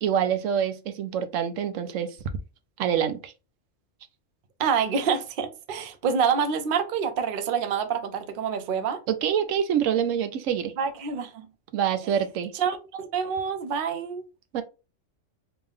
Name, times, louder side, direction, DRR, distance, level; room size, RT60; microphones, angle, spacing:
voice 1, 0.0-2.2 2.8-3.3 9.1-10.7 11.7-12.5 14.5-14.6, right 8 dB, 80° right, 1.0 m, -26 dB
voice 2, 4.6-9.0 10.8-11.5 12.5-14.2, right 6 dB, 50° right, 0.7 m, -27 dB
3.3 x 3.0 x 3.6 m
omnidirectional pair, 1.3 m